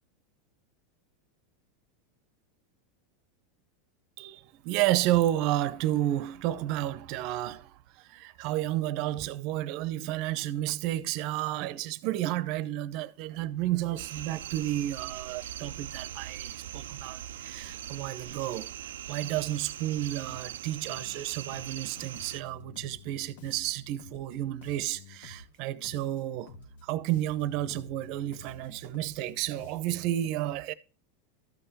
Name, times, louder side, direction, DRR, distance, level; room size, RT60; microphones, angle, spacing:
voice 1, 4.2-26.5 26.8-30.7, right 14 dB, 55° right, 0.8 m, -31 dB
sound 1, 14.0-22.4, right 11 dB, 85° right, 0.4 m, -41 dB
Bass guitar, 20.3-20.6 20.9-25.6 25.8-30.2, left 4 dB, 80° left, 1.6 m, -50 dB
13.5 x 5.6 x 4.2 m
supercardioid pair, 120°, 0 cm